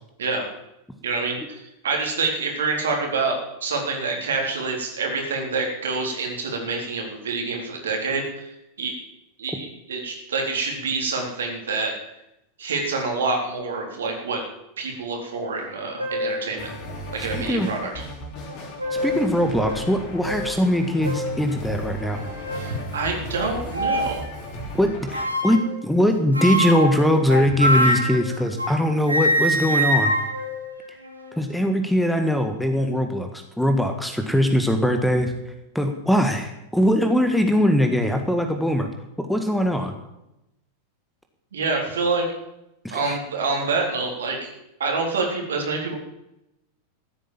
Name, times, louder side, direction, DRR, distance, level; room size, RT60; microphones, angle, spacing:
voice 1, 1.0-8.5 8.8-8.9 9.4-11.9 12.6-14.4 14.8-16.7 17.1-18.0 22.6-24.2 41.5-42.3 42.9-44.5 44.8-46.0, right 3 dB, 65° right, 1 dB, 3.8 m, -27 dB
sound 1, 15.6-15.7 16.0-16.4 17.1-17.2 18.5-19.2 19.7-19.8 20.3-20.4 21.0-21.3 22.0-22.7 23.7-24.2 25.1-25.7 26.3-28.8 29.1-31.4, equal, 85° right, 2.4 m, -25 dB
sound 2, 16.6-25.2, right 1 dB, 40° left, 3.8 m, -35 dB
voice 2, 17.2-17.7 19.0-22.2 24.7-30.1 31.4-35.3 35.7-38.9 39.2-39.9 42.8-43.2, equal, ahead, 5 dB, 1.6 m, -21 dB
14.5 x 9.1 x 7.3 m, 0.87 s
figure-of-eight pair, 90°, 0 cm